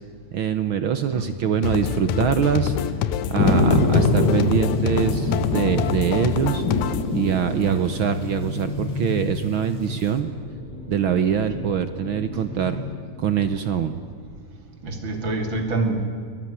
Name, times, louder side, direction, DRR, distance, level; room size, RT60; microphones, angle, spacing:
voice 1, 0.3-2.7 3.3-6.6 7.1-10.3 10.9-12.8 13.2-14.0, right 8 dB, 65° right, 10 dB, 1.3 m, -23 dB
sound 1, 1.6-7.1, left 9 dB, 80° left, 2.3 m, -26 dB
sound 2, 1.8-13.8, left 2 dB, ahead, 5.1 m, -35 dB
sound 3, 3.4-10.0, left 2 dB, 35° left, 3.1 m, -24 dB
voice 2, 3.4-3.8 7.5-7.9 14.8-16.0, right 2 dB, 40° right, 6 dB, 3.1 m, -26 dB
27.5 x 20.0 x 9.9 m, 2.1 s
omnidirectional pair, 3.4 m